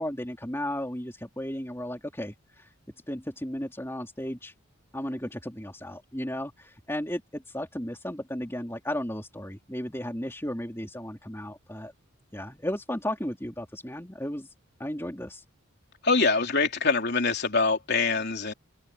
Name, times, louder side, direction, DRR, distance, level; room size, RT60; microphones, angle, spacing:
voice 1, 0.0-2.7 3.1-4.5 4.9-11.9 12.3-14.5 14.8-15.4, left 1 dB, 10° left, 3.7 m, -34 dB
voice 2, 16.0-18.5, left 4 dB, 50° left, 3.6 m, -24 dB
open air
head